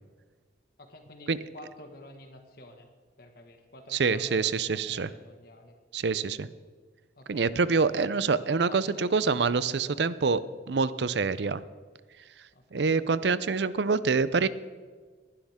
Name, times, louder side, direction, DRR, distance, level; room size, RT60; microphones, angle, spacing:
voice 1, 0.8-2.9 3.2-5.7 7.2-8.2 8.5-10.0 12.5-12.9, left 1 dB, 60° left, 5 dB, 1.8 m, -50 dB
voice 2, 3.9-5.1 5.9-6.5 7.3-10.4 10.7-11.6 12.7-14.5, right 4 dB, 70° right, 16 dB, 0.6 m, -26 dB
20.0 x 11.5 x 3.7 m, 1.5 s
head